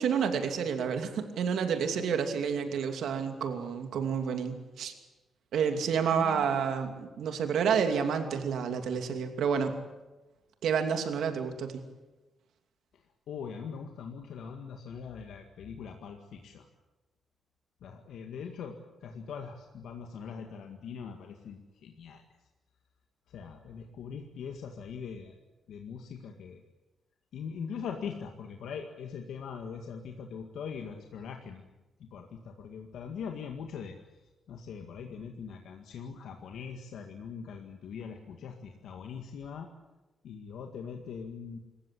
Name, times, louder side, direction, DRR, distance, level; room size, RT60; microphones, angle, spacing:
voice 1, 0.0-4.9 5.5-9.8 10.6-11.8, right 6 dB, 80° right, 6 dB, 2.6 m, -29 dB
voice 2, 6.1-6.7 12.9-16.7 17.8-22.2 23.3-25.4 25.7-26.6 27.3-31.7 32.0-33.9 34.5-39.7 40.2-41.6, left 6 dB, 90° left, 3 dB, 1.9 m, -42 dB
26.0 x 15.0 x 9.9 m, 1.1 s
wide cardioid pair, 165°, 0 cm